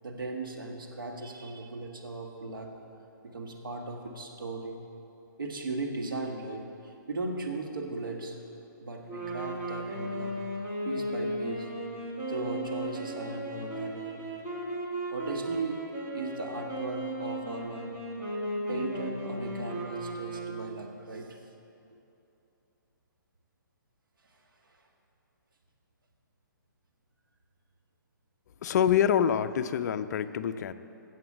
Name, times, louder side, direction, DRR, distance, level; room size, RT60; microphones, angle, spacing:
voice 1, 0.0-2.8 3.2-4.8 5.4-8.4 8.8-10.4 10.8-11.7 12.3-14.3 15.1-18.0 18.7-21.4 24.3-24.4 24.6-24.8, right 3 dB, 90° right, 2 dB, 1.4 m, -37 dB
sound 1, 9.1-20.9, right 1 dB, 20° right, 1.6 m, -36 dB
voice 2, 28.6-30.7, left 9 dB, 55° left, 11 dB, 0.4 m, -26 dB
7.9 x 7.6 x 7.2 m, 2.8 s
hypercardioid pair, 145°, 11 cm